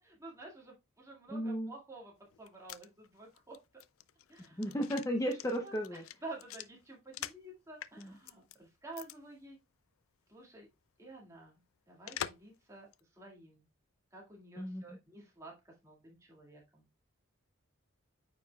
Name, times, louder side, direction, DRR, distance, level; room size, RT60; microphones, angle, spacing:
voice 1, 0.0-3.6 4.3-4.8 5.6-9.6 10.3-10.7 11.0-11.6 11.9-13.7 14.1-17.0, right 2 dB, 15° right, -2 dB, 2.0 m, -51 dB
voice 2, 1.3-1.7 4.6-6.0 8.0-8.1 14.6-14.8, equal, 15° left, 3 dB, 0.6 m, -34 dB
sound 1, 2.3-7.5 7.8-8.6 8.9-9.2 9.4-9.5 12.1-12.6 12.9-13.0, left 10 dB, 80° left, 0.4 m, -45 dB
8.8 x 5.3 x 2.3 m, 0.23 s
head